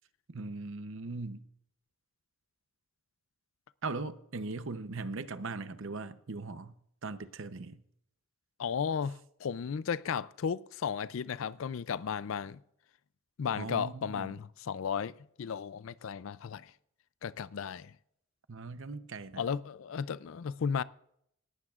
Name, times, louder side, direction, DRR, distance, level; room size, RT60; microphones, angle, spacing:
voice 1, 0.3-1.4 3.8-6.7 7.0-7.8 13.5-14.3 18.5-19.4, right 3 dB, 65° right, 0.8 m, -39 dB
voice 2, 8.6-12.6 13.4-15.1 15.4-16.7 17.2-17.9 19.4-20.8, left 7 dB, 70° left, 0.4 m, -34 dB
18.5 x 14.5 x 2.4 m
head